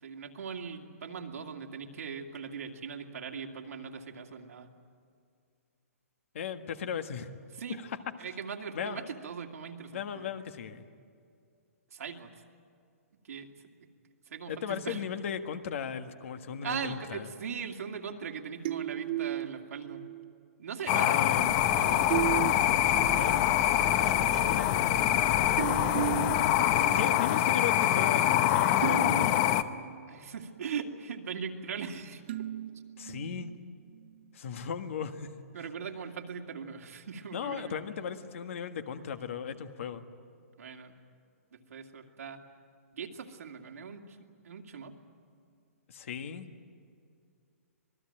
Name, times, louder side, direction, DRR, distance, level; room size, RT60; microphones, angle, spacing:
voice 1, 0.0-4.7 7.5-7.8 8.2-10.3 11.9-12.3 13.2-13.5 14.3-15.0 16.6-20.0 20.6-21.2 21.7-22.1 30.1-32.2 35.5-37.8 39.8-39.9 40.6-40.9 41.5-42.4 42.9-44.2 44.4-44.9, right 6 dB, 75° right, 3 dB, 2.4 m, -40 dB
voice 2, 6.3-7.3 7.8-8.0 8.7-9.0 9.9-10.9 14.5-17.3 21.0-21.7 23.2-23.4 24.4-24.8 26.9-29.5 33.0-33.5 34.3-35.3 37.3-40.0 45.9-46.5, left 7 dB, 60° left, 8 dB, 1.6 m, -37 dB
sound 1, 18.6-20.3 22.1-23.3 23.9-24.0 25.6-27.2 27.7-27.8 28.8-30.1 32.3-33.6, right 12 dB, 45° right, 0.5 m, -35 dB
sound 2, 20.9-29.6, left 12 dB, 30° left, 0.8 m, -25 dB
sound 3, 21.3-27.0, equal, 5° left, 1.3 m, -42 dB
26.0 x 19.5 x 8.9 m, 2.3 s
hypercardioid pair, 155°, 8 cm